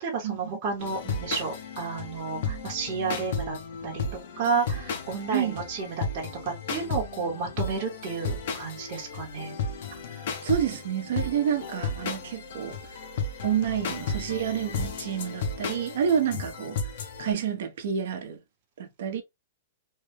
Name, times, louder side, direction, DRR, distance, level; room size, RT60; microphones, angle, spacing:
voice 1, 0.0-3.6 3.8-4.0 4.4-9.6, right 5 dB, 35° right, 0.9 m, -31 dB
sound 1, 0.8-17.3, left 4 dB, 60° left, 0.8 m, -34 dB
voice 2, 10.1-12.9 13.4-16.8 17.2-18.4 18.8-19.2, right 8 dB, 65° right, 0.8 m, -29 dB
3.2 x 2.2 x 3.3 m
supercardioid pair, 165°, 0 cm